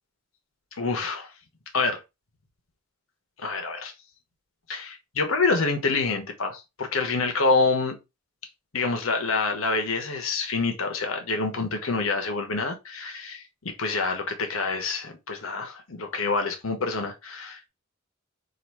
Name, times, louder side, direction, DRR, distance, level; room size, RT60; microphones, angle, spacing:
voice 1, 0.8-1.3 1.7-2.0 3.4-3.9 4.7-8.0 8.7-17.7, left 3 dB, 85° left, 1.1 m, -27 dB
3.9 x 2.6 x 4.6 m
head